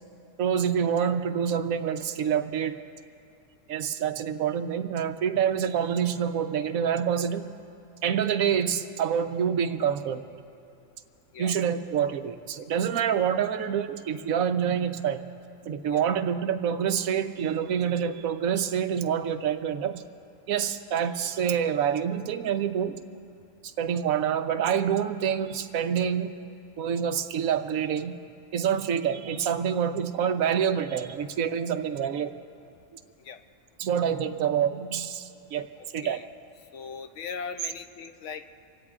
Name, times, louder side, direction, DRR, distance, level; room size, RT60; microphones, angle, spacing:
voice 1, 0.4-2.8 3.7-7.4 8.0-10.2 11.4-15.2 15.6-20.0 20.5-22.9 23.6-26.3 26.8-28.2 28.5-32.3 33.8-35.7 35.9-36.2, right 8 dB, 80° right, 8 dB, 1.1 m, -27 dB
voice 2, 35.8-36.3 36.7-38.5, left 6 dB, 65° left, 9 dB, 0.9 m, -39 dB
26.0 x 17.0 x 2.4 m, 2.5 s
omnidirectional pair, 1.5 m